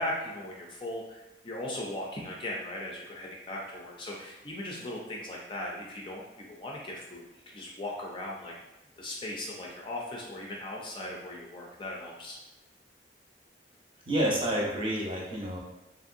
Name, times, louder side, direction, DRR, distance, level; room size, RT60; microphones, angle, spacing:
voice 1, 0.0-7.2 7.5-8.5 9.0-12.4, left 1 dB, 25° left, -2 dB, 0.4 m, -38 dB
voice 2, 14.1-15.6, right 1 dB, 30° right, -4 dB, 0.6 m, -29 dB
2.9 x 2.6 x 2.5 m, 0.95 s
head